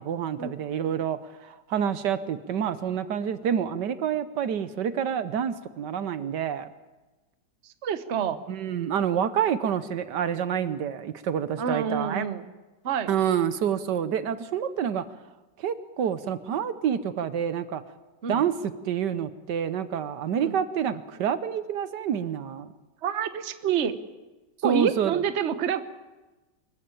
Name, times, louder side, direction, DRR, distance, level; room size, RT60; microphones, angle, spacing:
voice 1, 0.0-6.7 8.5-12.3 13.1-15.0 15.6-17.8 18.3-18.5 18.8-22.7 24.6-25.2, right 8 dB, 75° right, 13 dB, 1.5 m, -28 dB
voice 2, 7.8-8.4 11.6-12.4 12.8-13.1 18.2-18.4 20.4-20.5 23.0-23.9 24.6-25.8, right 7 dB, 45° right, 11 dB, 1.2 m, -27 dB
24.5 x 14.5 x 8.8 m, 1.1 s
omnidirectional pair, 1.9 m